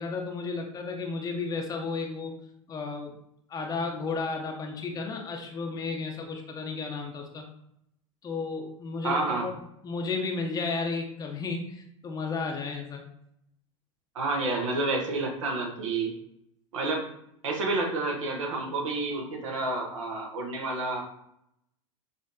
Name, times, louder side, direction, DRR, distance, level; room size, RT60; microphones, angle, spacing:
voice 1, 0.0-2.4 2.7-3.1 3.5-7.4 8.2-9.5 9.8-13.0, left 4 dB, 20° left, 2 dB, 0.7 m, -33 dB
voice 2, 9.0-9.5 14.1-16.1 16.7-17.1 17.4-21.0, right 3 dB, 70° right, 1 dB, 1.0 m, -29 dB
6.5 x 2.5 x 2.6 m, 0.76 s
figure-of-eight pair, 85°, 17 cm